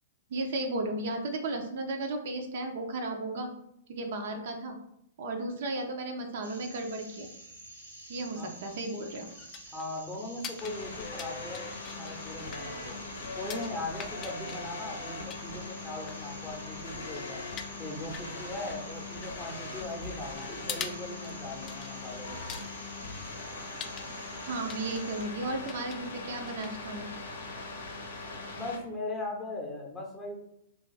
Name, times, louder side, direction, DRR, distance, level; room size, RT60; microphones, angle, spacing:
voice 1, 0.3-3.5 3.9-4.8 5.2-7.3 8.1-9.3 24.4-27.1, right 2 dB, 55° right, 4 dB, 0.5 m, -34 dB
sound 1, 6.4-25.3, right 1 dB, 80° right, 1.0 m, -49 dB
sound 2, 8.6-27.6, left 7 dB, 25° left, 0.3 m, -47 dB
voice 2, 9.7-13.0 13.4-17.4 17.8-22.4 28.5-30.4, left 2 dB, 10° left, -2 dB, 0.7 m, -39 dB
sound 3, 10.6-28.8, left 3 dB, 65° left, 0.7 m, -41 dB
2.5 x 2.4 x 3.9 m, 0.78 s
figure-of-eight pair, 110°, 0 cm